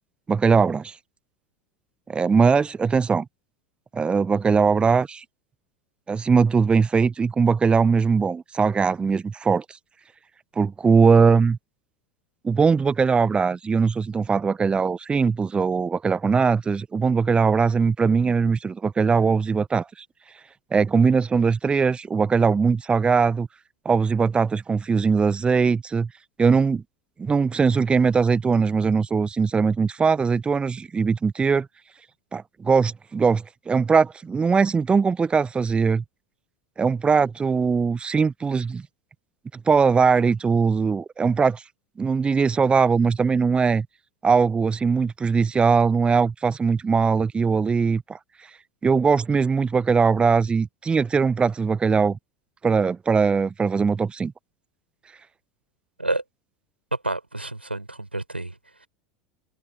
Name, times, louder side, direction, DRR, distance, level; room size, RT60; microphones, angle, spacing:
voice 1, 0.3-1.0 2.1-3.3 3.9-5.2 6.1-9.6 10.6-11.6 12.4-20.0 20.7-23.5 23.8-26.1 26.4-26.8 27.2-31.7 32.3-36.0 36.8-38.8 39.7-41.6 42.0-43.9 44.2-48.2 48.8-52.2 52.6-54.3, right 5 dB, 20° right, 0.9 m, -20 dB
voice 2, 56.9-58.5, right 2 dB, 85° right, 5.0 m, -29 dB
figure-of-eight pair, 80°, 6 cm